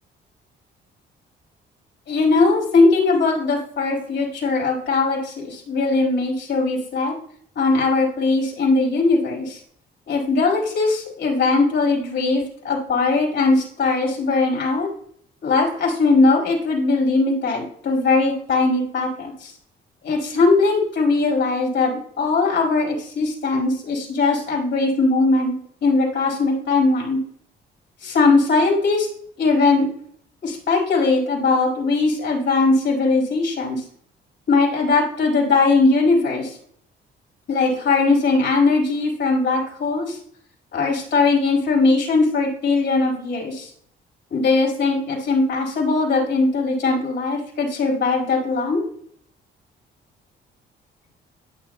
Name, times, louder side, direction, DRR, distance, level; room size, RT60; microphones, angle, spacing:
voice 1, 2.1-7.1 7.5-9.6 10.1-14.9 15.4-19.5 20.0-25.5 25.8-27.2 28.0-29.1 29.4-29.9 30.4-33.8 34.5-36.5 37.5-40.2 40.7-43.7 44.3-48.8, left 3 dB, 65° left, -2 dB, 5.0 m, -20 dB
22.5 x 7.6 x 2.2 m, 0.64 s
cardioid pair, 90°, 20 cm